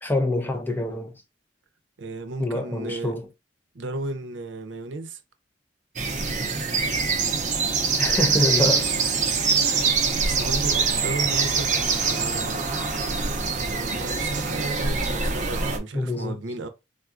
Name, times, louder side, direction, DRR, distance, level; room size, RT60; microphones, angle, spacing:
voice 1, 0.0-1.1 2.4-3.3 8.0-8.9 15.9-16.4, left 2 dB, 10° left, 0.5 m, -25 dB
voice 2, 2.0-3.2 3.7-5.2 9.3-9.5 10.1-12.6 13.6-16.7, right 2 dB, 85° right, 0.5 m, -34 dB
sound 1, 6.0-15.8, right 5 dB, 45° right, 0.6 m, -24 dB
3.6 x 2.3 x 2.4 m
head